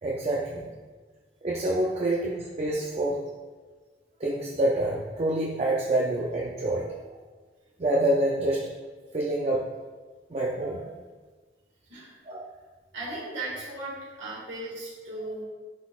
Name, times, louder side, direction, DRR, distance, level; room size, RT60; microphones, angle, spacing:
voice 1, 0.0-0.7 1.4-3.2 4.2-7.0 7.8-8.7 9.1-9.6 10.3-10.9 12.3-12.5, right 1 dB, 35° right, -4 dB, 0.6 m, -27 dB
voice 2, 11.8-12.2 12.9-15.4, right 2 dB, 80° right, -6 dB, 1.9 m, -37 dB
11.0 x 4.0 x 2.4 m, 1.4 s
head